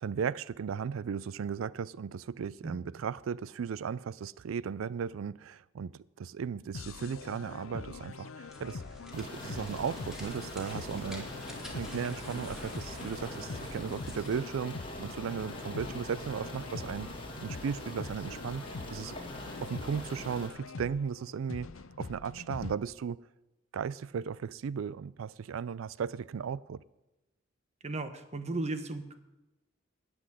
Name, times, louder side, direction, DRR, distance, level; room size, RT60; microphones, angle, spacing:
voice 1, 0.0-8.8 9.1-11.3 11.7-17.1 17.4-18.6 18.9-19.2 19.6-21.7 22.0-23.2 23.7-26.8, right 6 dB, 80° right, 0.4 m, -36 dB
sound 1, 6.7-22.8, left 4 dB, 85° left, 0.6 m, -44 dB
sound 2, 8.4-14.5, equal, 5° right, 2.4 m, -49 dB
sound 3, 9.1-20.5, left 1 dB, 25° left, 2.3 m, -43 dB
voice 2, 27.8-29.1, right 2 dB, 35° right, 1.1 m, -35 dB
14.0 x 6.1 x 9.8 m
head